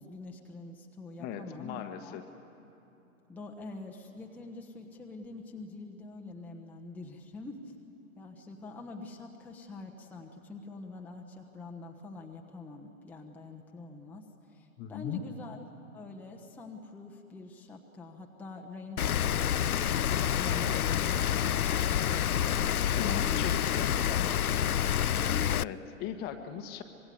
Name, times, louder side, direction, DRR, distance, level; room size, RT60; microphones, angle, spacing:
voice 1, 0.0-2.2 3.3-7.7 8.1-15.6 15.9-23.6 23.9-25.5, left 3 dB, 5° left, 1 dB, 1.1 m, -45 dB
voice 2, 1.2-2.2 14.8-15.2 22.9-23.9 25.5-26.8, left 9 dB, 20° left, 8 dB, 1.2 m, -38 dB
Rain, 19.0-25.6, left 10 dB, 80° left, 0.5 m, -28 dB
25.5 x 22.0 x 9.5 m, 3.0 s
figure-of-eight pair, 120°, 43 cm